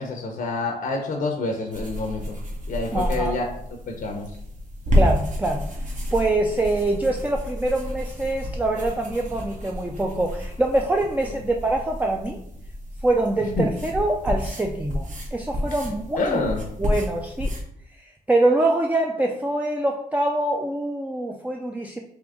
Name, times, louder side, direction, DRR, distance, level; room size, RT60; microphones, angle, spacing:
voice 1, 0.0-2.4 2.7-3.4 3.9-4.3 13.6-13.7 16.2-16.6, left 3 dB, 65° left, 3 dB, 0.7 m, -27 dB
sound 1, 1.7-17.6, left 1 dB, 55° right, 1.2 m, -30 dB
voice 2, 2.9-3.4 4.9-5.7 6.1-12.4 13.0-16.5 16.8-17.5 18.3-22.0, right 2 dB, 10° right, 1 dB, 0.4 m, -24 dB
3.7 x 2.9 x 3.5 m, 0.72 s
cardioid pair, 70°, 16 cm